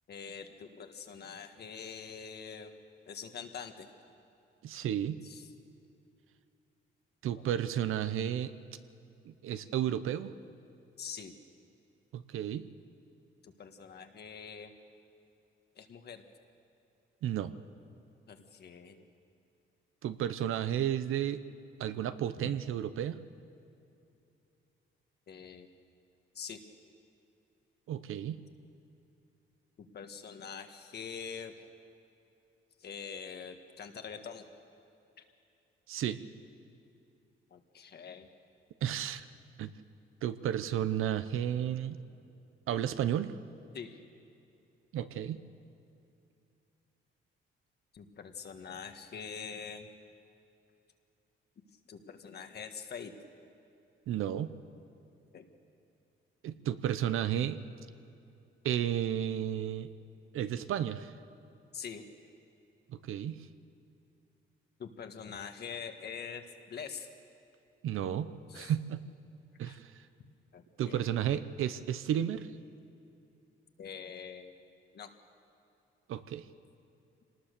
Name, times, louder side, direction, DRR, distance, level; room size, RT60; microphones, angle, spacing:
voice 1, 0.1-2.7 3.1-3.9 5.2-5.5 11.0-11.3 13.4-14.7 15.7-16.2 18.3-19.0 25.3-25.7 26.3-26.6 29.8-31.5 32.8-34.5 37.5-38.3 43.7-44.0 47.9-49.9 51.9-53.1 55.3-55.5 61.7-62.0 64.8-67.1 68.5-68.7 69.6-69.8 70.5-71.1 73.8-74.6 74.9-75.1, left 6 dB, 50° left, 6 dB, 1.6 m, -44 dB
voice 2, 4.6-5.2 7.2-8.5 9.2-10.3 12.1-12.7 17.2-17.5 20.0-21.4 21.8-23.2 27.9-28.4 35.9-36.2 38.8-39.3 39.6-39.7 40.2-42.0 42.7-43.3 44.9-45.4 54.1-54.5 56.4-57.6 58.6-59.9 60.3-61.1 63.0-63.5 67.8-69.0 69.6-69.9 70.8-72.5 76.1-76.4, right 10 dB, 80° right, 13 dB, 0.8 m, -32 dB
26.0 x 19.0 x 6.8 m, 2.7 s
cardioid pair, 130°, 21 cm